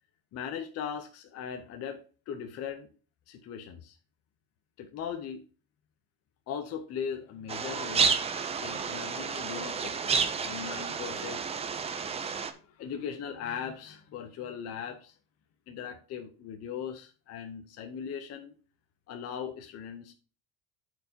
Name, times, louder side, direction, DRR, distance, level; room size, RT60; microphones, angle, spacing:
voice 1, 0.3-2.9 3.3-4.0 4.8-5.4 6.5-8.1 8.6-11.5 11.9-15.2 15.7-18.5 19.1-20.1, left 7 dB, 35° left, 6 dB, 0.7 m, -39 dB
sound 1, 7.5-12.5, right 5 dB, 15° right, 0.4 m, -30 dB
12.5 x 4.6 x 2.8 m, 0.36 s
cardioid pair, 155°, 41 cm